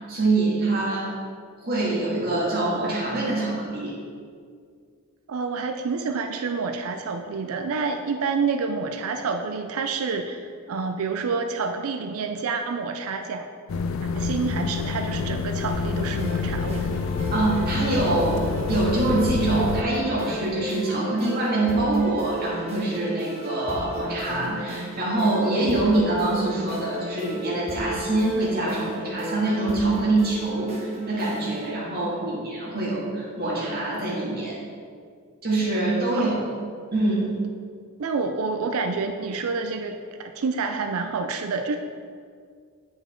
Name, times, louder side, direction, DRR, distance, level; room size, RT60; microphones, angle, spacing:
voice 1, 0.1-1.1 1.6-3.9 17.3-30.7 31.1-34.6 35.4-36.3 36.9-37.3, right 2 dB, 45° right, -6 dB, 2.0 m, -24 dB
voice 2, 5.3-13.5 14.1-17.0 32.2-32.4 36.2-36.5 38.0-41.8, right 4 dB, 80° right, 6 dB, 0.4 m, -28 dB
sound 1, 13.7-19.8, left 5 dB, 70° left, 0.4 m, -28 dB
sound 2, 15.7-31.7, equal, 30° right, 1.1 m, -35 dB
8.8 x 5.1 x 3.7 m, 2.1 s
head